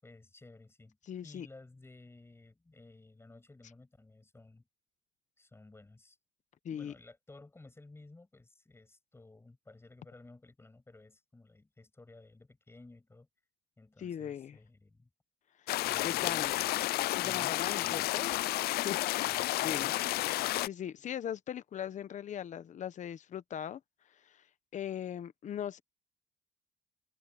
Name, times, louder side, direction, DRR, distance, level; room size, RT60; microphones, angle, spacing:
voice 1, 0.0-1.0 1.2-4.7 5.4-6.2 6.7-13.3 13.8-15.1 15.9-16.7 17.2-18.3 19.2-19.9, left 2 dB, 15° left, 6.9 m, -56 dB
voice 2, 1.1-1.5 6.6-6.9 14.0-14.6 16.0-16.5 17.1-18.3 18.7-19.3 19.6-19.9 20.6-23.8 24.3-24.4 24.7-25.8, left 9 dB, 45° left, 1.0 m, -39 dB
sound 1, 15.7-20.7, left 17 dB, 70° left, 0.4 m, -31 dB
cardioid pair, 110°, 17 cm